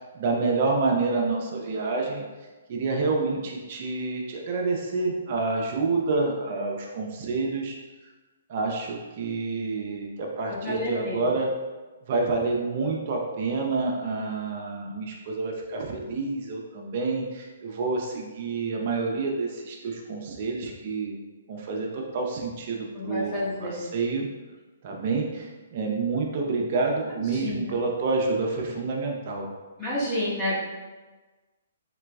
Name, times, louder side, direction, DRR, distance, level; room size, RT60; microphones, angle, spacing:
voice 1, 0.0-2.2 2.7-7.8 8.5-11.5 12.1-21.2 21.5-23.3 23.6-24.3 24.8-29.5, right 3 dB, 45° right, 0 dB, 0.5 m, -28 dB
voice 2, 10.4-11.3 22.9-23.8 27.3-27.6 29.8-30.5, left 1 dB, 25° left, -7 dB, 1.1 m, -30 dB
3.2 x 2.9 x 2.3 m, 1.2 s
hypercardioid pair, 145°, 0 cm